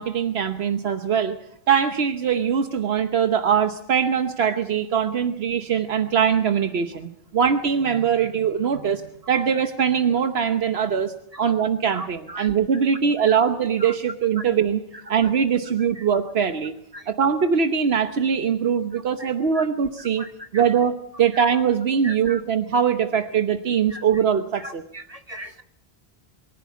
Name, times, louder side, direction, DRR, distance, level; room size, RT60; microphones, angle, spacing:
voice 1, 0.0-1.4 1.7-9.0 9.3-14.8 15.1-16.7 17.1-20.2 20.5-24.8, right 7 dB, 80° right, 8 dB, 1.2 m, -22 dB
voice 2, 11.9-12.8 13.2-13.4 13.8-14.0 14.4-14.5 14.9-15.3 15.9-16.1 16.9-17.1 18.9-19.7 20.0-20.7 21.3-21.4 22.0-22.4 23.0-23.1 23.9-24.2 24.6-25.6, right 1 dB, 40° right, 8 dB, 1.2 m, -39 dB
23.5 x 14.5 x 8.3 m, 0.75 s
omnidirectional pair, 1.1 m